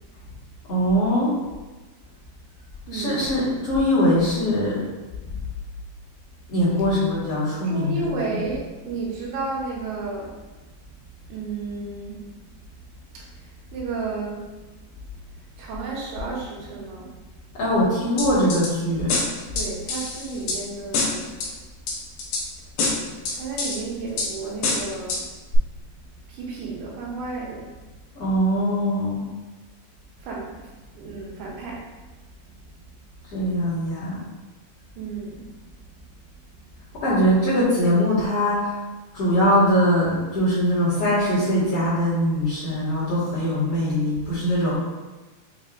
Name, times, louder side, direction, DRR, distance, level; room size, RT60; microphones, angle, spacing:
voice 1, 0.7-1.3 2.9-4.7 6.5-8.4 17.6-19.1 28.2-29.3 33.3-34.2 37.0-38.7 39.1-44.8, equal, 50° left, -13 dB, 2.0 m, -22 dB
voice 2, 2.9-3.3 7.6-10.4 11.1-12.3 13.1-14.6 15.5-17.2 19.5-21.3 23.3-25.3 25.5-25.7 26.3-27.7 30.2-32.1 34.9-35.5 36.8-36.9, right 3 dB, 85° right, -4 dB, 3.0 m, -32 dB
sound 1, 18.2-18.7 19.1-20.6 20.9-21.5 21.9-22.4 22.8-23.8 24.2-24.3 24.6-25.2 25.5-25.6, left 3 dB, 85° left, 1.6 m, -25 dB
6.9 x 2.7 x 2.5 m, 1.2 s
omnidirectional pair, 4.5 m